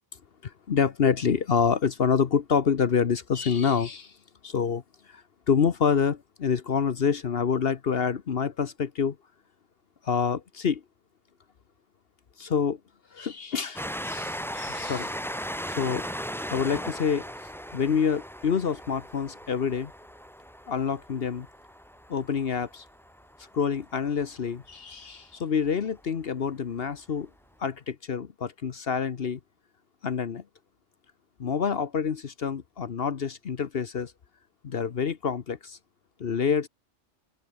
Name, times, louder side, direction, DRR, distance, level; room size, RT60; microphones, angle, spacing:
voice 1, 0.4-4.1 4.4-4.8 5.1-9.2 10.0-10.8 12.4-12.8 13.1-15.1 15.8-16.1 16.5-17.2 17.7-19.9 20.7-21.5 22.1-22.8 23.5-27.3 27.6-29.4 30.0-30.4 31.4-34.1 34.6-35.8 36.2-36.7, left 6 dB, 55° left, 1.1 m, -27 dB
Train, 13.8-24.9 25.7-25.8 26.0-26.1, equal, ahead, 7.7 m, -38 dB
open air
omnidirectional pair, 1.2 m